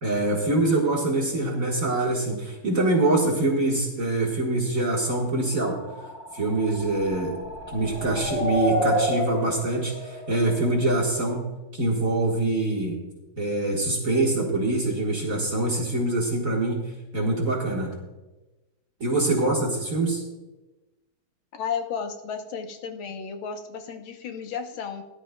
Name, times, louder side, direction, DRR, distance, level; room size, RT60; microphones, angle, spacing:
voice 1, 0.0-5.8 6.3-7.4 7.7-13.0 13.4-16.9 17.1-17.9 19.0-20.2, right 2 dB, 45° right, -2 dB, 1.8 m, -24 dB
sound 1, 5.5-11.3, equal, 60° left, 3.5 m, -30 dB
voice 2, 21.5-25.0, left 6 dB, 90° left, 6 dB, 1.8 m, -33 dB
18.0 x 11.0 x 2.2 m, 1.1 s
omnidirectional pair, 2.2 m